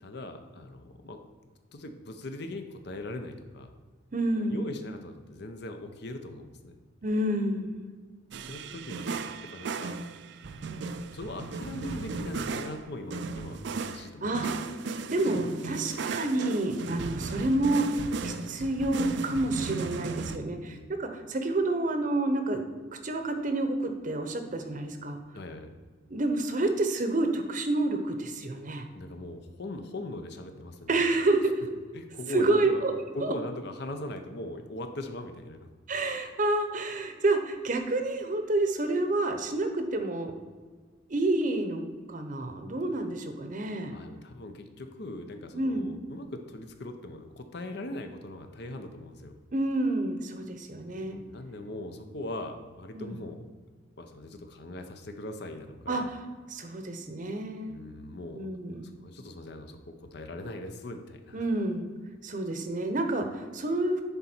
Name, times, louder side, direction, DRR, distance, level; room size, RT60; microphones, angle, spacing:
voice 1, 0.0-1.2 1.7-3.7 4.3-6.8 8.5-9.9 10.4-14.4 19.7-20.9 25.3-25.7 28.9-31.1 31.9-32.8 33.1-35.7 43.8-49.4 50.9-53.4 54.0-56.1 57.7-58.5 58.8-61.4, left 1 dB, 60° left, 6 dB, 0.7 m, -40 dB
voice 2, 4.1-4.6 7.0-7.8 14.2-14.5 15.1-17.9 18.2-22.6 23.0-25.2 26.1-28.9 30.9-31.5 32.3-32.9 33.2-33.3 35.9-40.3 41.1-41.8 42.1-43.9 45.5-45.9 49.5-51.2 52.9-53.2 55.9-56.0 56.5-57.8 58.3-58.9 61.3-61.8 62.2-64.0, right 2 dB, 40° right, 6 dB, 0.8 m, -29 dB
sound 1, 8.3-20.4, right 4 dB, 60° right, 0.4 m, -36 dB
10.5 x 4.1 x 4.4 m, 1.4 s
head